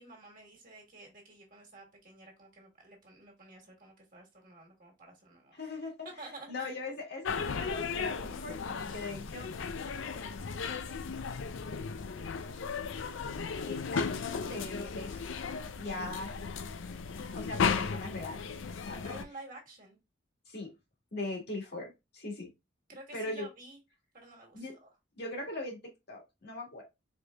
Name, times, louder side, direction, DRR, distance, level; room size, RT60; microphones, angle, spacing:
voice 1, 0.0-5.6 6.2-6.8 19.0-20.0 22.9-23.8 24.1-24.9, right 2 dB, 45° right, 1.5 m, -51 dB
voice 2, 5.5-5.9 6.5-9.5 13.7-15.2 15.8-16.3 17.3-18.5 18.8-19.0 20.5-20.7 21.1-22.5 23.1-23.5 24.5-24.7 25.2-26.8, left 2 dB, 55° left, 1.5 m, -40 dB
sound 1, 7.2-19.2, left 5 dB, 90° left, 0.5 m, -35 dB
4.4 x 3.3 x 2.3 m
head